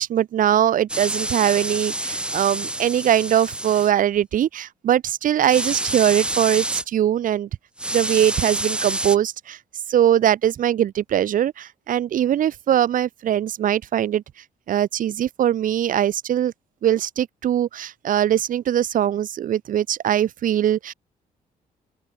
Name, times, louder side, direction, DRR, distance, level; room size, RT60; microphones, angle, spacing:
voice 1, 0.0-7.5 7.9-9.6 9.9-14.2 14.7-16.5 16.8-20.9, right 10 dB, 65° right, 3.6 m, -21 dB
sound 1, 0.9-3.9 5.5-6.8 7.8-9.2, right 1 dB, 5° right, 3.1 m, -27 dB
open air
cardioid pair, 150°, 15 cm